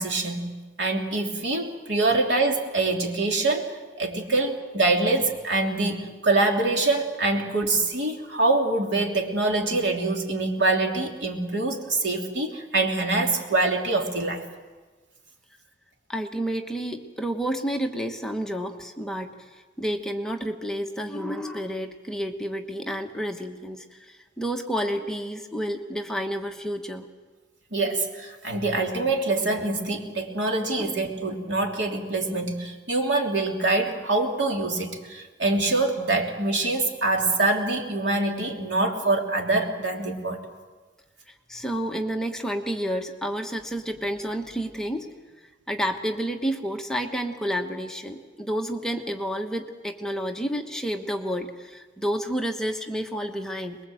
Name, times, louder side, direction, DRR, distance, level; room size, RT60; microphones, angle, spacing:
voice 1, 0.0-3.7 4.0-14.4 27.7-40.4, right 2 dB, 80° right, 1 dB, 3.2 m, -25 dB
voice 2, 16.1-27.1 30.8-31.0 41.5-45.1 45.7-53.8, equal, 5° left, 3 dB, 1.2 m, -30 dB
23.5 x 21.5 x 7.8 m, 1.3 s
head